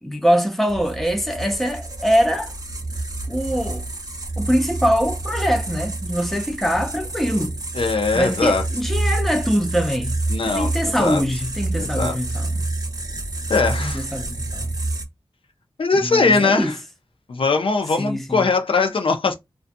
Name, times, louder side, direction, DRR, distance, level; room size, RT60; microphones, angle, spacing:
voice 1, 0.0-2.5 3.3-3.8 4.4-7.6 8.1-10.1 10.5-12.7 13.8-14.7 15.9-16.7 18.0-18.5, equal, ahead, 0.6 m, -23 dB
sound 1, 0.7-15.0, right 2 dB, 40° right, 0.7 m, -28 dB
voice 2, 7.7-8.6 10.3-10.7 11.0-11.2 11.8-12.2 13.5-14.1 15.8-16.8 17.3-19.3, left 4 dB, 65° left, 0.4 m, -20 dB
2.5 x 2.2 x 2.5 m
wide cardioid pair, 60°, 10 cm